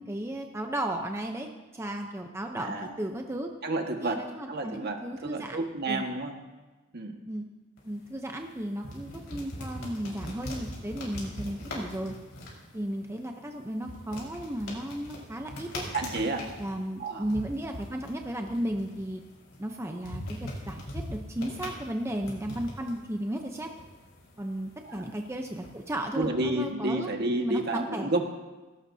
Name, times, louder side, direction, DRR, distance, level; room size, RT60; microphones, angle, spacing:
voice 1, 0.0-3.5 4.0-6.0 7.3-7.5 7.8-12.1 12.7-15.9 16.6-19.2 19.6-23.7 24.4-28.1, right 1 dB, 15° right, 3 dB, 0.7 m, -34 dB
voice 2, 2.6-3.0 3.6-6.4 6.9-7.2 15.9-16.5 17.0-17.3 24.9-25.1 26.1-28.2, right 2 dB, 55° right, 3 dB, 1.6 m, -30 dB
sound 1, 7.8-26.0, left 1 dB, 70° left, 4.8 m, -42 dB
18.5 x 17.0 x 2.8 m, 1.2 s
head